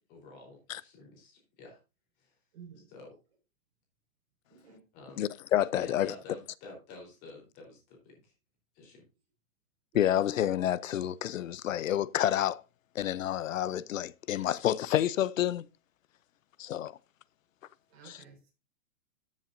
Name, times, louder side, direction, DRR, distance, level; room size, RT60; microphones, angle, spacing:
voice 1, 0.1-1.8 2.2-2.3 2.9-3.2 4.9-5.2 5.8-8.3 8.7-9.0, left 2 dB, 20° left, 3.8 m, -50 dB
voice 2, 2.5-2.9 4.5-4.8 10.1-10.2 17.9-18.5, right 7 dB, 45° right, 5.2 m, -52 dB
voice 3, 5.2-6.1 9.9-12.6 12.9-15.7 16.6-17.0 18.0-18.2, left 11 dB, 65° left, 0.7 m, -29 dB
13.5 x 7.5 x 2.6 m
hypercardioid pair, 175°, 43 cm